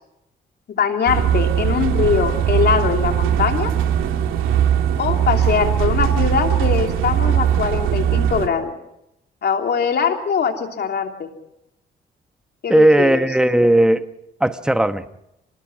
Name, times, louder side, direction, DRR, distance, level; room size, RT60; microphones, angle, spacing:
voice 1, 0.7-3.7 5.0-8.7 9.4-11.3 12.6-13.2, left 6 dB, 55° left, 4 dB, 3.2 m, -22 dB
sound 1, 1.1-8.5, right 10 dB, 90° right, 2.5 m, -19 dB
voice 2, 12.7-14.1 14.4-15.0, right 1 dB, 5° right, 10 dB, 1.1 m, -16 dB
27.0 x 19.5 x 6.2 m, 0.83 s
cardioid pair, 90°, 20 cm